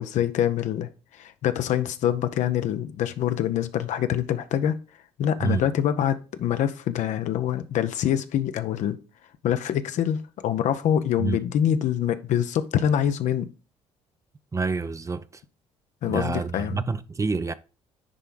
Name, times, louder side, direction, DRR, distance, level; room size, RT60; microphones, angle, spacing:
voice 1, 0.0-4.8 5.2-9.0 9.4-13.5 16.0-16.9, left 10 dB, 60° left, 0.8 m, -25 dB
voice 2, 14.5-15.4 16.1-17.5, right 4 dB, 20° right, 0.6 m, -27 dB
10.0 x 3.4 x 3.8 m
hypercardioid pair, 60°, 14 cm